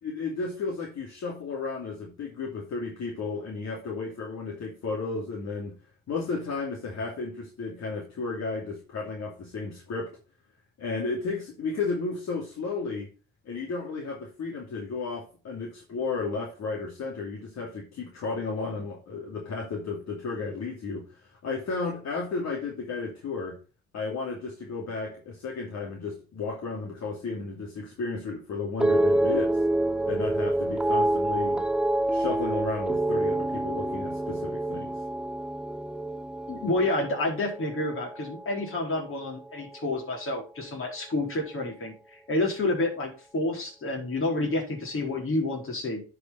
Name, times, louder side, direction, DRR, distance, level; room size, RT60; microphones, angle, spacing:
voice 1, 0.0-5.8 6.1-10.1 10.8-13.1 13.4-23.6 23.9-29.6 30.0-31.6 32.1-35.0, left 4 dB, 60° left, -2 dB, 2.6 m, -33 dB
sound 1, 28.8-39.2 39.5-40.0, right 1 dB, 5° right, 0.5 m, -27 dB
voice 2, 36.5-46.0, left 2 dB, 45° left, 0 dB, 4.3 m, -29 dB
10.5 x 5.1 x 4.4 m, 0.34 s
cardioid pair, 90°, 30 cm